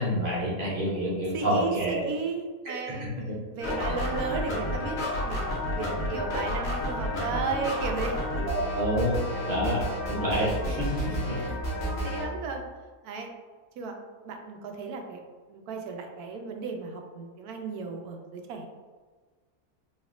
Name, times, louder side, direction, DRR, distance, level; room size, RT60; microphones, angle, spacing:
voice 1, 0.0-2.0 2.6-2.7 3.9-4.0 8.4-9.2 9.5-11.4, equal, 45° right, -5 dB, 0.8 m, -28 dB
voice 2, 1.3-3.1 3.5-8.2 10.3-10.5 11.4-11.6 12.0-12.6 13.0-13.3 13.8-13.9 14.2-15.2 15.5-18.7, right 5 dB, 75° right, 3 dB, 1.1 m, -35 dB
sound 1, 3.6-12.2, left 1 dB, 50° left, 0.9 m, -31 dB
4.2 x 2.7 x 2.4 m, 1.4 s
omnidirectional pair, 1.6 m